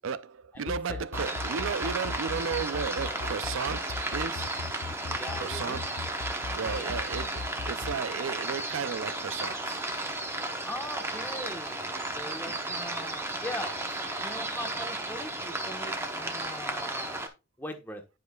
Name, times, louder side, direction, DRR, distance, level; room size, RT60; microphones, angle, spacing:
voice 1, 0.0-4.5 5.4-5.8 6.3-9.8, right 6 dB, 70° right, 0.4 m, -34 dB
sound 1, 0.5-7.9, left 4 dB, 65° left, 0.4 m, -37 dB
voice 2, 0.5-1.3 5.2-5.8 6.6-6.9 10.6-13.8 14.2-17.2 17.6-18.0, left 1 dB, 10° left, 1.1 m, -40 dB
sound 2, 1.1-17.3, right 2 dB, 10° right, 0.8 m, -34 dB
10.5 x 5.0 x 2.3 m
head